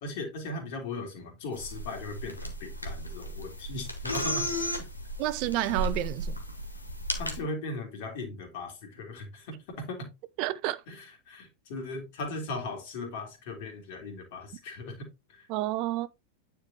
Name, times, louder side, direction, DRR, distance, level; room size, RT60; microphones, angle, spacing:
voice 1, 0.0-4.5 7.2-10.1 10.9-15.5, left 2 dB, 50° left, 2.6 m, -38 dB
sound 1, 1.5-7.4, equal, 85° left, 1.4 m, -35 dB
voice 2, 5.2-6.4 10.4-10.8 15.5-16.1, right 15 dB, 45° right, 0.4 m, -29 dB
9.5 x 4.7 x 2.9 m
figure-of-eight pair, 90°, 0 cm